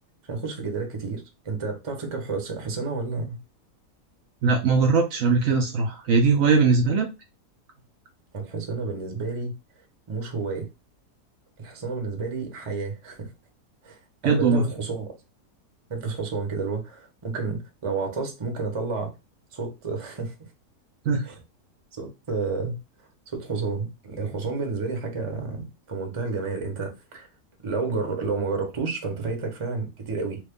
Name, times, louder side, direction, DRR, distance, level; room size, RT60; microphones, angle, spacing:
voice 1, 0.3-3.4 8.3-9.5 10.1-10.7 11.6-13.3 13.8-15.1 15.9-19.1 19.5-20.5 21.3-21.4 21.9-22.8 23.3-27.3 27.6-30.4, right 4 dB, 30° right, 0.5 m, -30 dB
voice 2, 4.4-7.1 14.2-14.6 21.1-21.2, right 4 dB, 70° right, 0.8 m, -20 dB
3.1 x 2.4 x 3.5 m
omnidirectional pair, 1.7 m